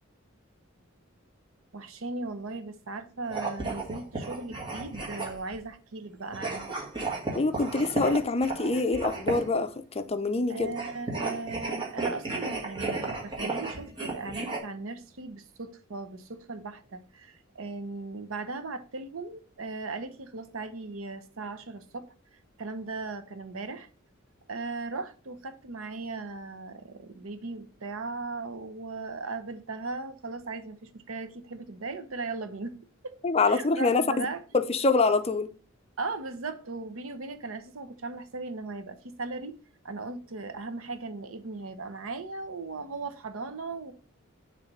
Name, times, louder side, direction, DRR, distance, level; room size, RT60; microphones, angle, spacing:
voice 1, 1.7-6.7 10.5-22.1 22.6-23.9 24.5-32.8 33.0-34.4 36.0-39.6 39.8-43.9, right 3 dB, 90° right, 0.8 m, -38 dB
sound 1, 3.2-5.6 6.3-9.6 10.7-14.6, right 3 dB, 25° right, 1.6 m, -34 dB
voice 2, 7.3-10.7 33.2-34.3 34.7-35.5, left 3 dB, 30° left, 0.6 m, -25 dB
6.8 x 3.3 x 5.5 m
head